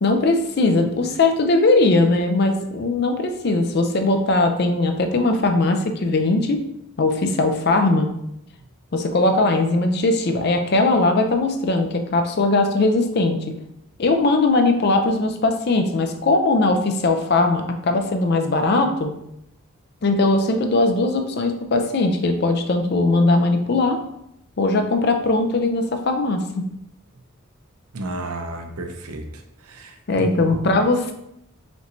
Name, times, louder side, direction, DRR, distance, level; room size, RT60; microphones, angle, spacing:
voice 1, 0.0-6.6 7.0-8.1 8.9-13.5 14.0-19.1 20.0-24.0 24.6-26.6 30.1-31.2, left 2 dB, 45° left, 5 dB, 0.4 m, -19 dB
voice 2, 27.9-29.2 29.7-30.6, right 2 dB, 90° right, 5 dB, 0.6 m, -32 dB
5.1 x 2.6 x 3.0 m, 0.79 s
head